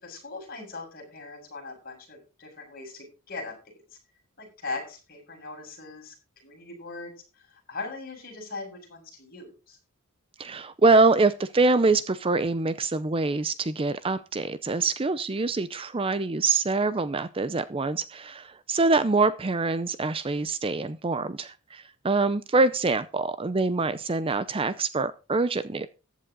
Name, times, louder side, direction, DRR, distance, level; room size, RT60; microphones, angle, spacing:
voice 1, 0.0-3.8 4.4-6.1 6.4-9.8, left 3 dB, 40° left, 1 dB, 7.0 m, -40 dB
voice 2, 10.4-25.9, right 3 dB, 25° right, 14 dB, 0.5 m, -25 dB
14.5 x 10.5 x 3.9 m, 0.33 s
head